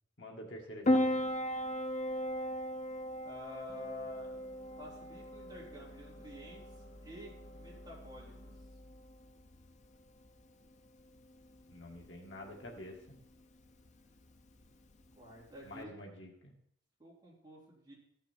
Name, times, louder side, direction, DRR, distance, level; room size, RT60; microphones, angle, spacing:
voice 1, 0.2-1.2 11.7-13.2 15.6-16.5, left 1 dB, 70° left, 0 dB, 1.9 m, -48 dB
Piano, 0.8-15.8, left 1 dB, 40° left, 0.6 m, -38 dB
voice 2, 3.2-4.4 4.8-6.6 7.0-8.5 15.2-15.9 17.0-17.9, left 1 dB, 20° right, -5 dB, 3.5 m, -50 dB
Deep detuned analog synth bass, 3.7-10.8, left 1 dB, 90° left, 1.7 m, -57 dB
15.5 x 5.8 x 4.4 m, 0.69 s
head